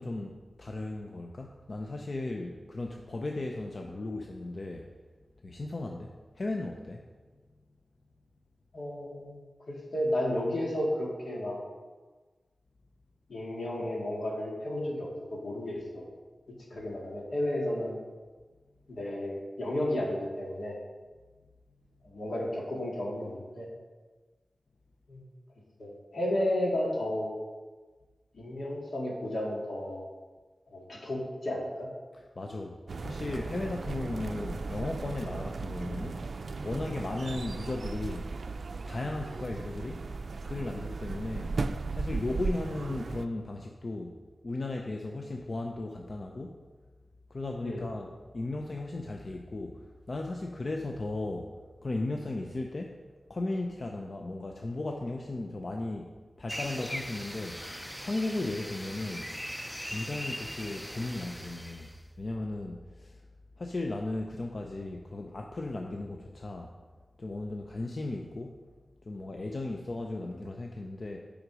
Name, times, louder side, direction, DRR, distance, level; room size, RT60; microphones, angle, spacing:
voice 1, 0.0-4.9 5.4-7.0 16.7-16.9 32.1-36.2 36.6-38.3 38.9-40.1 40.4-41.6 41.9-44.1 44.4-46.6 47.3-51.5 51.8-53.0 53.3-56.1 56.4-57.6 58.0-63.2 63.6-66.7 67.2-68.6 69.0-71.2, left 2 dB, 50° left, 2 dB, 0.6 m, -36 dB
voice 2, 8.7-9.4 9.7-11.6 13.3-16.1 16.7-17.9 18.9-20.8 22.0-23.7 25.1-25.2 25.8-27.3 28.3-30.0 30.7-31.9 47.6-47.8, left 1 dB, 80° left, -3 dB, 2.0 m, -32 dB
sound 1, 32.9-43.2, right 3 dB, 70° right, 0.4 m, -36 dB
sound 2, 56.5-62.0, equal, 5° left, 0.4 m, -40 dB
8.0 x 5.1 x 4.8 m, 1.4 s
wide cardioid pair, 65°, 0 cm